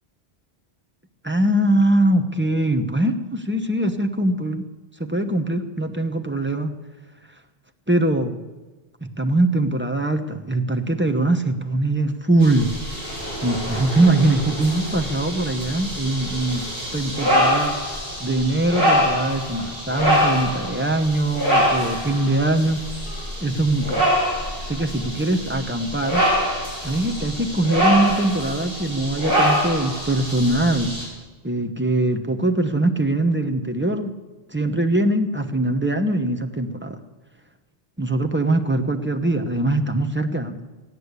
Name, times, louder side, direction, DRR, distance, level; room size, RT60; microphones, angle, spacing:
voice 1, 1.2-4.6 5.0-6.7 7.9-8.4 9.2-12.7 13.4-16.6 16.9-17.8 18.2-22.8 23.4-24.1 24.6-26.2 26.8-30.9 31.4-34.1 34.5-37.0 38.0-40.6, right 2 dB, 10° right, 6 dB, 0.9 m, -22 dB
sound 1, 12.4-31.1, equal, 60° right, 6.5 m, -25 dB
16.5 x 9.9 x 8.2 m, 1.2 s
omnidirectional pair, 1.1 m